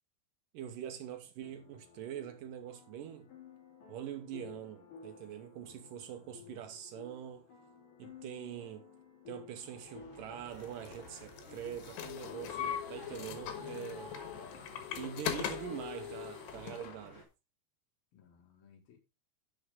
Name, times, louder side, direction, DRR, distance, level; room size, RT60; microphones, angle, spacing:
voice 1, 0.5-3.3 3.9-7.5 8.0-8.9 9.3-14.1 14.9-17.3, right 10 dB, 70° right, 2.2 m, -44 dB
sound 1, 1.4-15.1, left 6 dB, 50° left, 4.2 m, -55 dB
voice 2, 5.9-6.7 18.1-19.0, left 8 dB, 65° left, 3.7 m, -62 dB
sound 2, 9.5-17.2, left 1 dB, 20° left, 3.3 m, -52 dB
sound 3, 10.6-17.0, left 10 dB, 85° left, 3.5 m, -40 dB
11.5 x 6.6 x 3.6 m
omnidirectional pair, 4.7 m